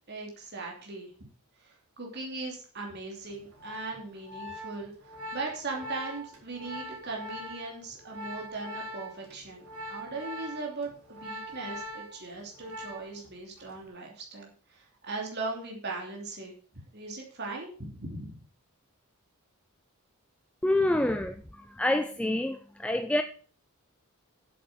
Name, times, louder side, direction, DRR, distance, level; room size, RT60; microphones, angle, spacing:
voice 1, 0.1-1.1 1.6-4.9 5.3-16.5 16.9-18.3 20.9-21.0, right 3 dB, 50° right, 2.9 m, -39 dB
Organ, 3.3-13.3 13.6-13.9, equal, 75° right, 4.0 m, -42 dB
voice 2, 20.6-23.2, left 1 dB, 5° left, 0.5 m, -27 dB
8.5 x 7.7 x 6.9 m
head